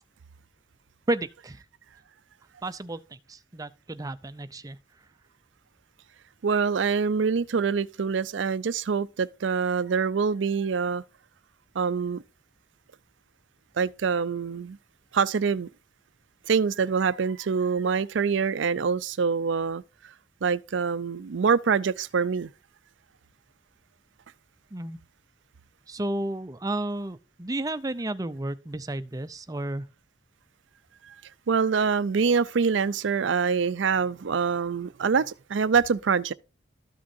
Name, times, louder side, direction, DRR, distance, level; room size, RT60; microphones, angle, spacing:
voice 1, 1.1-1.6 2.6-4.8 24.7-25.0 25.9-29.9, right 1 dB, 20° right, 0.5 m, -32 dB
voice 2, 6.4-11.0 11.7-12.2 13.8-14.8 15.1-15.7 16.5-19.8 20.4-22.5 31.1-31.2 31.5-36.3, right 5 dB, 85° right, 0.5 m, -25 dB
13.5 x 6.1 x 2.7 m
head